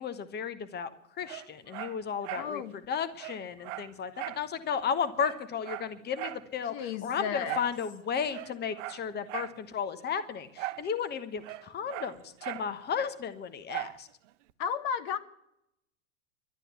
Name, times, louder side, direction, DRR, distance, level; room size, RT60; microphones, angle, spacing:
voice 1, 0.0-14.1, left 7 dB, 25° left, 12 dB, 1.2 m, -34 dB
Dog, 1.2-2.5 2.8-2.9 3.2-4.5 4.8-4.9 5.2-6.5 7.4-7.8 8.2-9.6 10.6-10.9 11.2-12.7 13.7-14.0 14.5-14.6, right 16 dB, 75° right, 0.7 m, -39 dB
voice 2, 2.4-2.7 6.7-7.6 14.6-15.2, left 7 dB, 55° left, 11 dB, 1.2 m, -33 dB
12.5 x 9.8 x 9.5 m, 0.79 s
hypercardioid pair, 110°, 37 cm